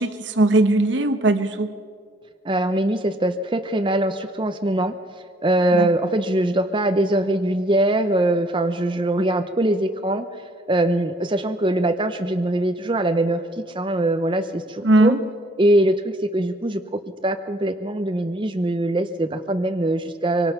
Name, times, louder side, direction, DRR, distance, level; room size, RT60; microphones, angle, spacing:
voice 1, 0.0-1.7 5.7-5.9 14.8-15.2, right 2 dB, 70° right, 9 dB, 1.3 m, -19 dB
voice 2, 2.4-4.9 5.4-10.3 10.7-13.4 13.7-15.1 15.6-20.5, right 1 dB, 25° right, 7 dB, 0.7 m, -22 dB
24.5 x 23.5 x 5.8 m, 2.1 s
head